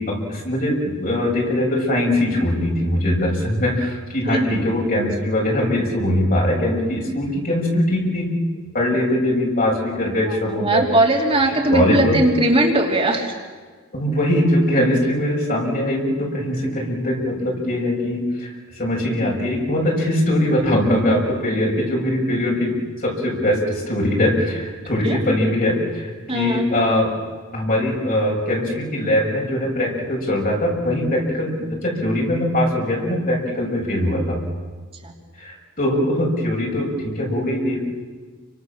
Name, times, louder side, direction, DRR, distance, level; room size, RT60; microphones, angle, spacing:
voice 1, 0.0-8.3 8.7-10.8 11.5-12.2 13.9-27.1 27.5-34.4 35.4-37.9, left 1 dB, 40° left, -1 dB, 7.3 m, -21 dB
voice 2, 10.4-13.3 25.0-25.2 26.3-26.7 35.0-35.1, right 1 dB, 25° right, 0 dB, 3.2 m, -19 dB
29.5 x 25.0 x 7.4 m, 1.5 s
head